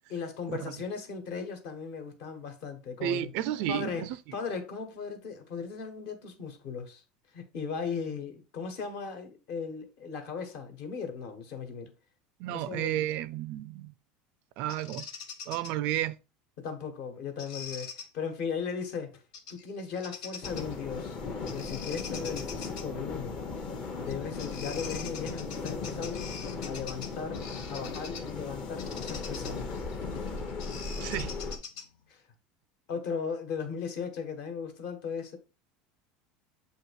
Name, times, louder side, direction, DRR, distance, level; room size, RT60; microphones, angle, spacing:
voice 1, 0.1-3.3 3.7-4.0 4.3-7.0 7.3-11.9 12.5-13.0 16.6-19.2 19.5-21.2 21.5-23.4 23.9-26.3 26.6-27.4 27.7-29.9 32.1-32.2 32.9-35.4, left 6 dB, 50° left, 1.4 m, -37 dB
voice 2, 3.0-4.2 12.4-13.9 14.6-15.1 15.5-16.2 31.0-31.3, right 13 dB, 50° right, 0.3 m, -32 dB
Bird vocalization bird call bird song, 14.7-15.7 17.4-18.1 19.3-19.6 20.0-20.8 21.5-22.9 24.1-24.2 24.4-28.3 28.8-32.0, left 6 dB, 70° left, 1.1 m, -43 dB
sound 1, 20.4-31.6, left 4 dB, 30° left, 0.8 m, -37 dB
7.6 x 2.8 x 4.7 m
cardioid pair, 175°, 3 cm